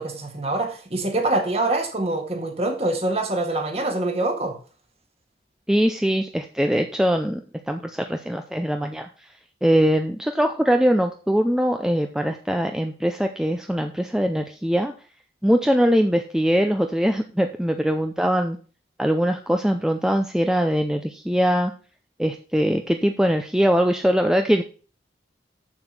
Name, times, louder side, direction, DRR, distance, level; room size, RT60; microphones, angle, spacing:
voice 1, 0.0-4.6, right 2 dB, 35° right, 1.8 m, -25 dB
voice 2, 5.7-7.4 7.7-9.1 9.6-14.9 15.4-18.6 19.0-21.7 22.2-24.6, equal, 5° right, 0.5 m, -22 dB
7.2 x 7.1 x 5.9 m
head